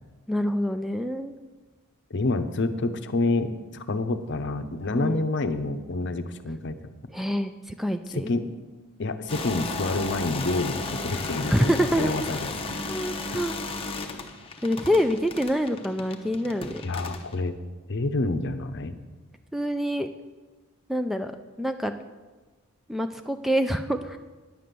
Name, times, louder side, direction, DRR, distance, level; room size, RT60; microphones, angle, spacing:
voice 1, 0.3-1.4 4.9-5.2 7.1-7.5 7.8-8.3 11.5-12.3 12.9-13.5 14.6-16.8 19.5-20.1 20.9-21.3 21.6-21.9 22.9-24.2, equal, ahead, 7 dB, 0.3 m, -26 dB
voice 2, 2.1-6.8 8.1-8.4 9.0-12.4 16.8-17.5 17.9-18.9, left 2 dB, 55° left, 9 dB, 0.7 m, -28 dB
sound 1, 9.3-17.4, left 3 dB, 25° left, 0.9 m, -34 dB
10.0 x 7.7 x 6.8 m, 1.3 s
head